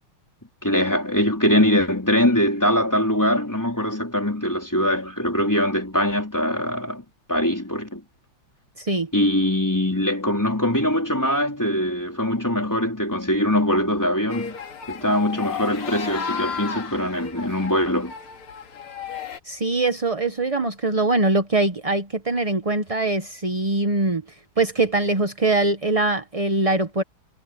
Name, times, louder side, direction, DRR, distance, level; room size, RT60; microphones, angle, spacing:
voice 1, 0.6-7.0 7.3-8.0 9.1-14.5 14.9-18.1, left 1 dB, 10° left, 3.9 m, -22 dB
voice 2, 8.8-9.1 19.5-24.2 24.6-27.0, right 2 dB, 60° right, 0.3 m, -22 dB
sound 1, 14.3-19.4, left 6 dB, 90° left, 3.0 m, -33 dB
omnidirectional pair, 2.3 m